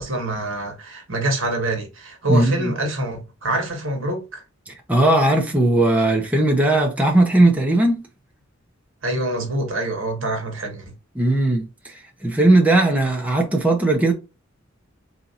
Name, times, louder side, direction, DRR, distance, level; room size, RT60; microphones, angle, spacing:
voice 1, 0.0-4.4 9.0-10.9, right 1 dB, 70° right, 1.3 m, -26 dB
voice 2, 2.3-2.7 4.7-8.0 11.1-14.1, right 2 dB, 5° right, 0.8 m, -18 dB
3.7 x 2.8 x 4.1 m
head